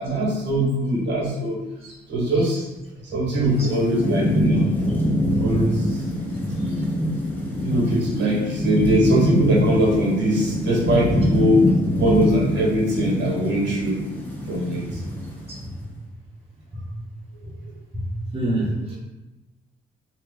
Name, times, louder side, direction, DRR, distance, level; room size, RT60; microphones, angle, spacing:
voice 1, 0.0-1.6 2.1-2.7 3.0-4.7 5.4-6.1 7.6-11.6 12.0-14.0 14.5-15.0, right 1 dB, 65° right, -4 dB, 1.3 m, -21 dB
Thunderstorm / Rain, 3.5-15.7, left 1 dB, 10° left, 0.8 m, -24 dB
voice 2, 17.9-18.9, right 1 dB, 30° right, -6 dB, 1.0 m, -26 dB
3.0 x 2.4 x 3.7 m, 1.0 s
cardioid pair, 90°, 20 cm